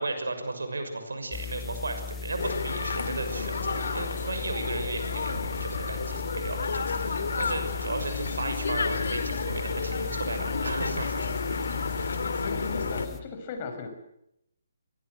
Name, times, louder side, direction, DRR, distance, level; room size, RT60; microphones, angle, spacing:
voice 1, 0.0-11.3 11.7-12.0, right 2 dB, 75° right, 7 dB, 6.3 m, -35 dB
sound 1, 1.3-13.2, left 4 dB, 10° left, 1.7 m, -38 dB
sound 2, 2.4-13.1, left 4 dB, 65° left, 2.6 m, -31 dB
voice 2, 12.4-13.9, left 4 dB, 35° left, 6 dB, 5.8 m, -37 dB
25.5 x 19.5 x 8.0 m, 0.80 s
figure-of-eight pair, 140°, 0 cm